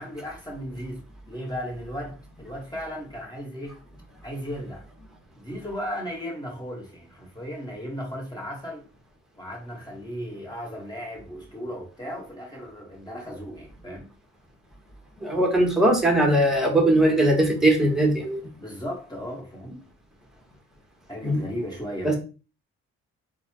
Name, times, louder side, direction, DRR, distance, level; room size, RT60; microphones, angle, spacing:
voice 1, 0.0-3.8 4.2-4.8 5.4-8.8 9.4-14.0 18.6-19.8 21.1-22.2, equal, 15° left, 1.8 m, -36 dB
voice 2, 15.2-18.4 21.2-21.4 22.0-22.2, right 1 dB, ahead, 1.3 m, -20 dB
3.9 x 2.4 x 3.0 m
supercardioid pair, 70°, 29 cm